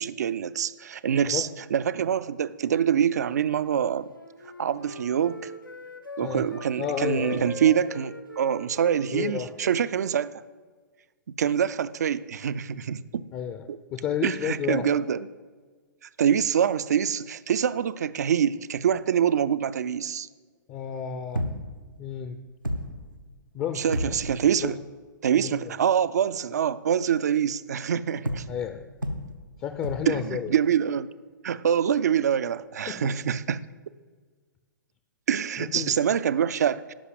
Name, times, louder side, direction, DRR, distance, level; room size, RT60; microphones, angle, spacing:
voice 1, 0.0-4.1 4.6-5.5 6.2-10.3 11.4-13.2 14.2-15.2 16.2-20.3 23.8-24.8 25.2-28.4 30.1-31.1 31.4-33.6 35.3-36.9, right 8 dB, 55° right, 0.4 m, -25 dB
Wind instrument woodwind instrument, 3.6-6.7 7.2-10.4, left 1 dB, 90° left, 1.0 m, -43 dB
voice 2, 6.8-7.5 9.1-9.5 13.3-13.6 13.9-14.8 20.7-21.4 22.0-22.4 23.5-24.2 24.6-24.7 25.4-25.6 28.5-28.8 29.6-30.5 32.9-33.1 35.6-35.9, left 8 dB, 25° left, 0.6 m, -31 dB
sound 1, 21.3-21.8 22.3-22.4 22.6-23.2 23.9-24.5 28.2-28.7 29.0-29.5 29.8-30.3 32.6-32.7, equal, 90° right, 1.0 m, -32 dB
11.5 x 5.7 x 7.7 m
figure-of-eight pair, 115°, 11 cm